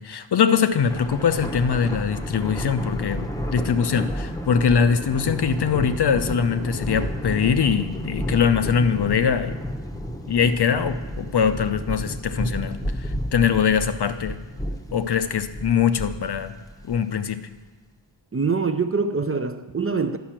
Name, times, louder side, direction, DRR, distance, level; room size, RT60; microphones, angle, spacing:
voice 1, 0.0-9.6 10.3-14.4 14.9-16.6 16.8-17.5, left 7 dB, 55° left, 10 dB, 0.6 m, -22 dB
Thunder, 0.7-17.3, equal, 5° left, 0.8 m, -31 dB
voice 2, 18.3-20.2, right 4 dB, 30° right, 8 dB, 0.5 m, -24 dB
10.5 x 5.5 x 7.4 m, 1.2 s
wide cardioid pair, 85°, 49 cm